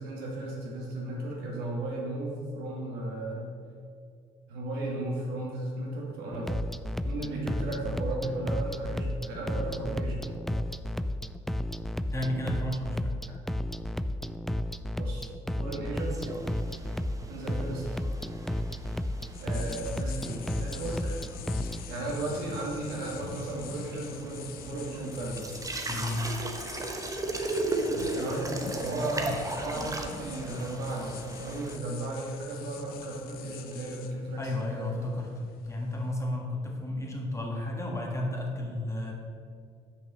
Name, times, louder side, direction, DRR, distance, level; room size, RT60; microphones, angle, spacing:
voice 1, 0.0-3.5 4.5-6.6 7.0-10.2 15.0-15.3 15.6-16.3 17.3-17.8 19.4-21.2 21.9-25.4 28.1-28.5 28.8-35.2, right 2 dB, 80° right, -3 dB, 2.2 m, -35 dB
sound 1, 6.3-21.8, left 1 dB, ahead, 0.3 m, -33 dB
voice 2, 12.1-13.2 25.9-26.3 29.7-30.2 34.4-39.1, left 1 dB, 20° left, -1 dB, 1.9 m, -33 dB
sound 2, 16.0-31.8, right 2 dB, 20° right, 1.0 m, -37 dB
sound 3, 17.7-36.1, left 9 dB, 70° left, 0.6 m, -46 dB
6.4 x 5.3 x 6.4 m, 2.3 s
supercardioid pair, 70°, 16 cm